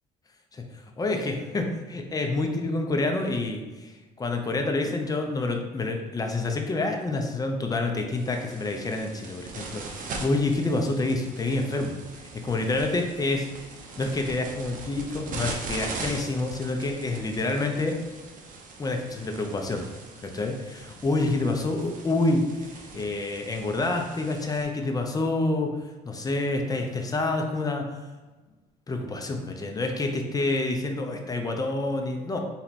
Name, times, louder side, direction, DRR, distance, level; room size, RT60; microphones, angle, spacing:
voice 1, 1.0-3.9 4.2-11.9 12.4-13.5 14.0-18.0 18.8-19.8 20.2-22.5 22.9-25.8 26.1-27.9 28.9-32.4, left 2 dB, 20° left, 3 dB, 0.7 m, -27 dB
sound 1, 8.1-24.6, right 3 dB, 50° right, 0.8 m, -41 dB
4.4 x 2.9 x 4.1 m, 1.2 s
cardioid pair, 110°, 17 cm